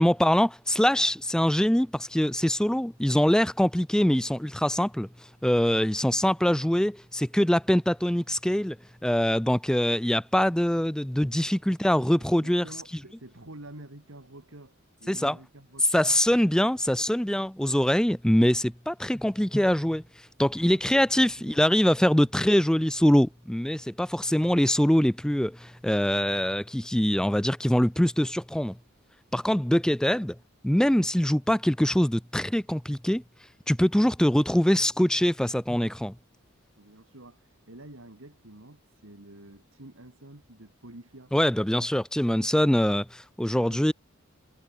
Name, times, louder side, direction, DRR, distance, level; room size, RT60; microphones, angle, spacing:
voice 1, 0.0-5.1 5.4-8.8 9.0-12.7 15.1-15.4 15.9-20.0 20.4-28.8 29.3-30.4 30.6-33.2 33.7-36.1 41.3-43.9, equal, 5° left, 0.5 m, -23 dB
voice 2, 12.3-16.2 20.6-21.6 22.1-22.3 36.8-41.3 42.7-42.8 43.6-43.9, right 1 dB, 70° right, 3.0 m, -48 dB
head